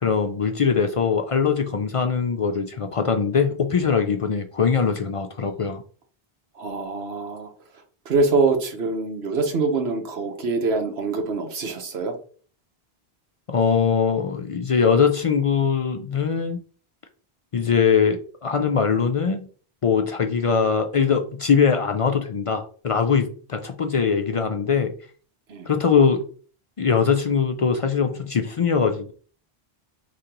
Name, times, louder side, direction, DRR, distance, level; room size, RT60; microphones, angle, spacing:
voice 1, 0.0-5.8 13.5-16.6 17.5-19.4 19.8-24.9 25.7-26.2 26.8-29.1, left 6 dB, 55° left, 6 dB, 0.3 m, -21 dB
voice 2, 6.5-7.5 8.0-12.2 25.5-25.7, right 3 dB, 85° right, 5 dB, 1.1 m, -24 dB
5.0 x 3.3 x 2.9 m, 0.43 s
omnidirectional pair, 1.0 m